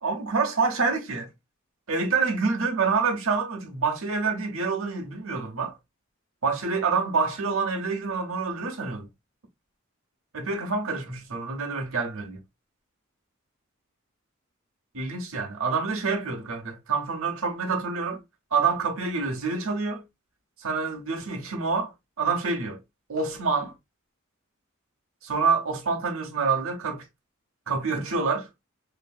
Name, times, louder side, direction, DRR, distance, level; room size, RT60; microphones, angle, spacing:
voice 1, 0.0-1.3 1.9-5.8 6.4-9.1 10.3-12.4 14.9-18.2 18.5-20.1 20.6-22.8 23.1-23.7 25.2-27.1 27.7-28.5, right 4 dB, 70° right, 0.9 m, -27 dB
2.9 x 2.7 x 2.2 m
head